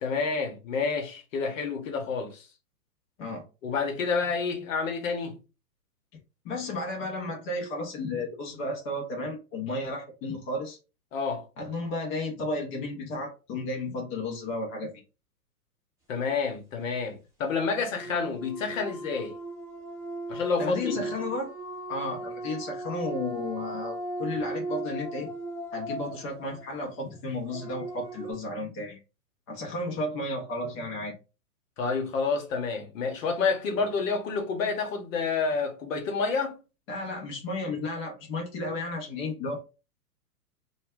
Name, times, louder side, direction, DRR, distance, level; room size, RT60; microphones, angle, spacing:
voice 1, 0.0-2.5 3.6-5.4 11.1-11.4 16.1-19.3 20.3-21.1 31.8-36.6, left 4 dB, 55° left, 0.9 m, -29 dB
voice 2, 6.4-10.8 11.6-14.9 20.6-21.5 21.9-25.3 25.7-29.0 29.5-31.1 33.8-33.9 36.9-39.6, left 2 dB, 20° left, 0.5 m, -33 dB
sound 1, 17.8-28.3, right 2 dB, 5° right, 0.8 m, -37 dB
2.2 x 2.0 x 3.4 m
hypercardioid pair, 120°, 47 cm